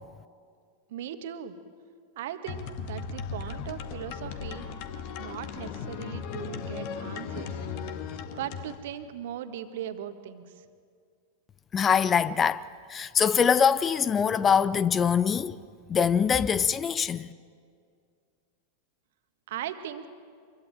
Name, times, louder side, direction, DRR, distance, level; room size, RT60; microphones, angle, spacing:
voice 1, 0.9-1.6 2.2-4.7 5.2-7.6 8.4-10.6 19.5-20.1, right 10 dB, 55° right, 1.7 m, -38 dB
sound 1, 2.5-8.8, left 6 dB, 45° left, 1.8 m, -37 dB
voice 2, 11.7-12.6 12.9-15.6 15.9-17.3, left 7 dB, 20° left, 0.6 m, -23 dB
25.5 x 22.5 x 9.0 m
figure-of-eight pair, 90°, 0 cm